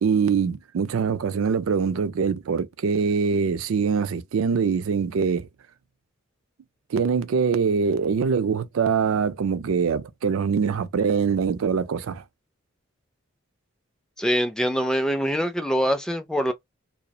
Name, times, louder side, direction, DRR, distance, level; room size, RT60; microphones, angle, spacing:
voice 1, 0.0-5.5 6.9-12.2, right 6 dB, 75° right, 0.4 m, -23 dB
voice 2, 14.2-16.5, equal, 5° left, 0.3 m, -24 dB
2.3 x 2.0 x 2.7 m
head